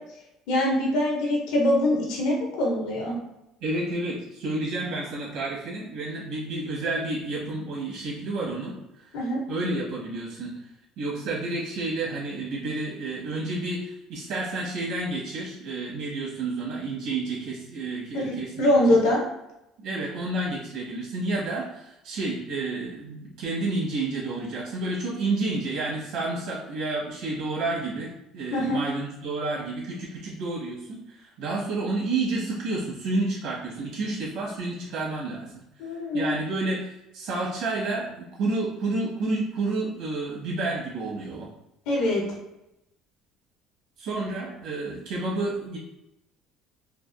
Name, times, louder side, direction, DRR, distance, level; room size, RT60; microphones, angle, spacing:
voice 1, 0.5-3.1 9.1-9.4 18.1-19.2 28.5-28.8 35.8-36.3 41.9-42.2, left 1 dB, 80° left, -1 dB, 1.0 m, -23 dB
voice 2, 3.6-8.7 9.0-9.1 9.5-10.5 11.0-18.7 19.8-35.5 36.1-41.5 44.0-45.8, right 2 dB, 60° right, -6 dB, 1.2 m, -30 dB
3.3 x 2.4 x 2.5 m, 0.87 s
cardioid pair, 175°, 0 cm